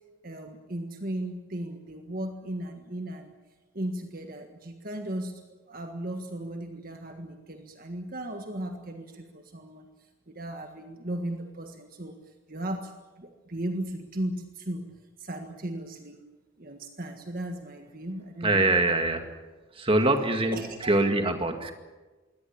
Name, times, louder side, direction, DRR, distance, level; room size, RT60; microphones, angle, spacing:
voice 1, 0.2-3.3 3.7-9.9 10.3-14.9 15.2-16.2 16.6-18.6 20.5-20.9, right 1 dB, 45° right, 5 dB, 1.6 m, -36 dB
voice 2, 18.4-19.3 19.7-21.7, right 2 dB, 25° right, 6 dB, 2.0 m, -24 dB
23.0 x 18.0 x 8.6 m, 1.2 s
head